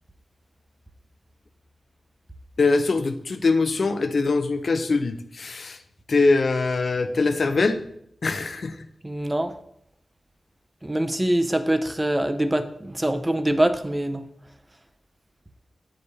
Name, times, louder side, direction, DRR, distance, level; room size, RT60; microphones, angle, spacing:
voice 1, 2.6-5.8 6.1-7.8 8.2-8.7, left 3 dB, 60° left, 10 dB, 0.6 m, -22 dB
voice 2, 9.0-9.5 10.8-14.3, right 1 dB, 15° right, 8 dB, 0.6 m, -24 dB
8.6 x 5.1 x 4.0 m, 0.71 s
wide cardioid pair, 100°, 0 cm